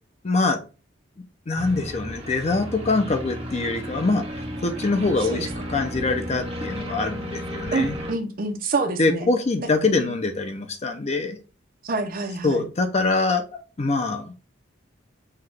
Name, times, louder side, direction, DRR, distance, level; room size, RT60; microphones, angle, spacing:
voice 1, 0.2-0.6 1.5-8.0 9.0-11.4 12.4-14.3, left 3 dB, 35° left, 0.5 m, -24 dB
sound 1, 1.5-8.1, equal, 30° right, 1.2 m, -33 dB
voice 2, 7.7-9.3 9.6-10.1 11.8-12.6, right 3 dB, 45° right, 0.7 m, -28 dB
5.6 x 2.3 x 3.3 m
head